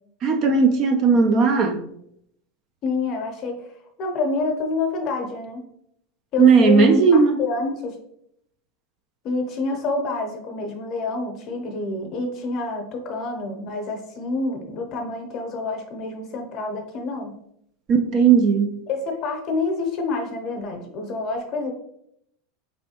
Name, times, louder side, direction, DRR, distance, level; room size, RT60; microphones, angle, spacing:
voice 1, 0.2-1.8 6.4-7.4 17.9-18.8, right 5 dB, 35° right, 0.3 m, -16 dB
voice 2, 2.8-3.5 4.0-5.6 6.3-7.9 9.2-17.3 18.9-21.7, left 3 dB, 35° left, 0.7 m, -27 dB
4.4 x 3.1 x 2.8 m
supercardioid pair, 165°, 0 cm